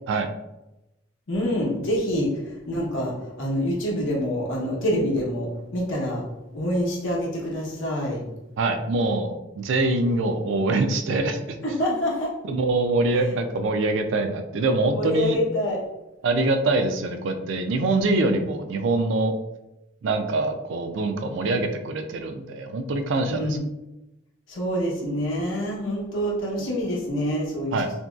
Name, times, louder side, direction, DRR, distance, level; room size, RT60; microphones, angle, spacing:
voice 1, 1.3-2.3 2.7-3.1 3.4-5.5 5.7-6.2 6.5-8.2 11.6-12.3 14.9-15.8 23.3-23.6 24.5-28.0, equal, 70° left, -3 dB, 0.8 m, -26 dB
voice 2, 8.6-11.8 12.5-15.4 16.2-19.3 20.0-23.6 27.7-27.9, right 2 dB, 65° right, 6 dB, 0.3 m, -24 dB
2.8 x 2.7 x 2.3 m, 0.93 s
head